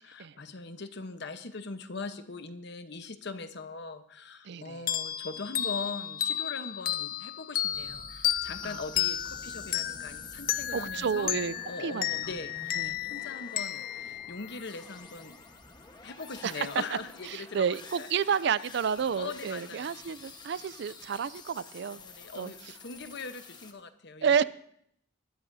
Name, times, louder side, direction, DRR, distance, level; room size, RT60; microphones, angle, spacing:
voice 1, 0.0-11.3 11.6-15.4 16.0-17.6 18.0-18.1 19.2-20.0 22.0-22.6 22.8-24.4, left 4 dB, 65° left, 9 dB, 1.0 m, -41 dB
voice 2, 4.4-4.8 8.6-9.1 10.7-11.5 11.8-12.4 12.7-13.0 16.4-17.0 17.3-22.0 22.4-22.8 24.2-24.4, right 7 dB, 65° right, 18 dB, 0.4 m, -30 dB
sound 1, 4.9-15.1, left 11 dB, 50° left, 0.5 m, -33 dB
sound 2, 7.7-23.7, left 3 dB, 25° left, 1.2 m, -49 dB
20.0 x 13.5 x 2.7 m, 0.70 s
head